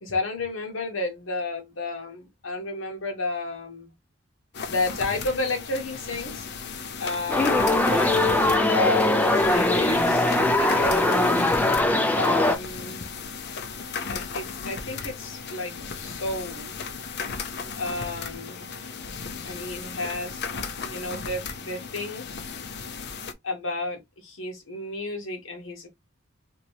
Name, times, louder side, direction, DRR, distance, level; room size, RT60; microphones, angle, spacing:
voice 1, 0.0-3.9 4.7-6.5 7.0-11.5 12.1-13.0 14.1-16.8 17.8-18.7 19.4-20.4 20.9-22.2 23.4-25.9, left 3 dB, 80° left, 1.1 m, -32 dB
sound 1, 4.5-23.3, left 5 dB, 60° left, 0.6 m, -36 dB
sound 2, 7.3-12.6, left 2 dB, 10° left, 0.4 m, -21 dB
2.9 x 2.7 x 2.9 m
head